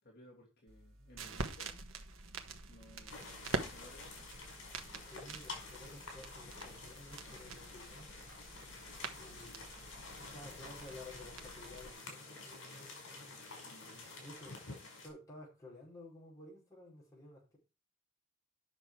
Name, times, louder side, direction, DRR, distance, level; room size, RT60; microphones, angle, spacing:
voice 1, 0.0-1.8 2.7-3.3 3.6-4.3 9.8-9.9 13.6-14.1, equal, 50° left, 2.7 m, -59 dB
sound 1, 0.7-11.9, right 3 dB, 85° right, 1.3 m, -46 dB
sound 2, 3.1-15.1, left 3 dB, 75° left, 5.3 m, -50 dB
voice 2, 5.1-8.1 9.2-9.7 10.2-13.4 14.2-14.6 15.0-17.6, left 2 dB, 15° left, 4.9 m, -53 dB
9.4 x 6.2 x 4.8 m
head